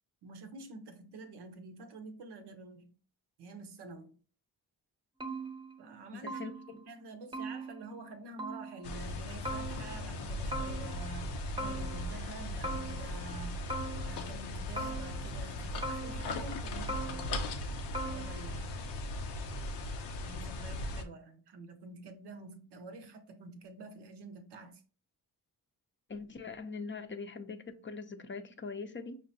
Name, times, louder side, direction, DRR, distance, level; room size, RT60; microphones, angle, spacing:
voice 1, 0.2-3.0 3.4-4.2 5.8-13.6 14.0-17.6 18.0-18.9 20.2-24.8, right 3 dB, 80° right, 0.7 m, -48 dB
sound 1, 5.2-6.0 6.3-6.9 7.3-8.1 8.4-9.0 9.4-10.2 10.5-11.2 11.6-12.3 12.6-13.4 13.7-14.4 14.8-15.5 15.8-16.6 16.9-17.6 17.9-18.7, right 2 dB, 10° right, 0.7 m, -41 dB
voice 2, 6.1-6.8 26.1-29.2, left 4 dB, 30° left, 0.5 m, -42 dB
sound 2, 8.8-21.0, left 1 dB, 90° left, 0.6 m, -38 dB
5.2 x 2.1 x 2.6 m
supercardioid pair, 45°, 40 cm